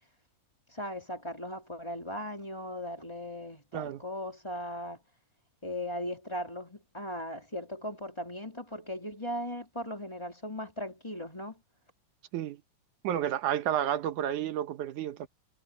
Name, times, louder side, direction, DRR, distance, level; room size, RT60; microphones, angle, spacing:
voice 1, 0.7-5.0 5.6-11.6, left 1 dB, 10° left, 2.8 m, -38 dB
voice 2, 13.0-15.3, right 10 dB, 75° right, 2.5 m, -31 dB
omnidirectional pair, 3.7 m